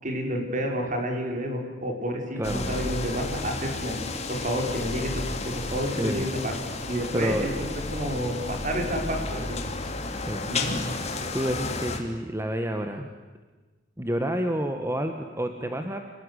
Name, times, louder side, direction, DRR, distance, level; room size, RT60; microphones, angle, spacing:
voice 1, 0.0-4.0 4.3-6.5 6.9-7.6 7.9-9.6 10.5-10.8, equal, 45° right, 2 dB, 5.5 m, -30 dB
sound 1, 2.4-12.0, left 2 dB, 35° left, 2.8 m, -32 dB
voice 2, 2.4-2.8 5.9-6.3 7.1-7.5 10.2-10.5 11.3-13.1 14.0-16.0, right 1 dB, 15° right, 5 dB, 1.6 m, -29 dB
28.0 x 19.5 x 10.0 m, 1.3 s
head